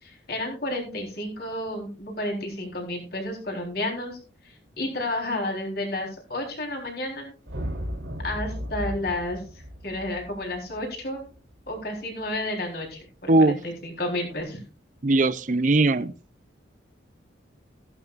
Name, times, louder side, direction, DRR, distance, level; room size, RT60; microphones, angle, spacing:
voice 1, 0.0-4.2 4.4-7.3 8.2-11.3 11.7-14.6, left 1 dB, 55° left, 1 dB, 3.9 m, -31 dB
sound 1, 7.5-11.9, equal, 75° right, 3.4 m, -35 dB
voice 2, 15.0-16.1, right 2 dB, 40° right, 15 dB, 0.5 m, -20 dB
14.5 x 12.0 x 2.5 m, 0.33 s
head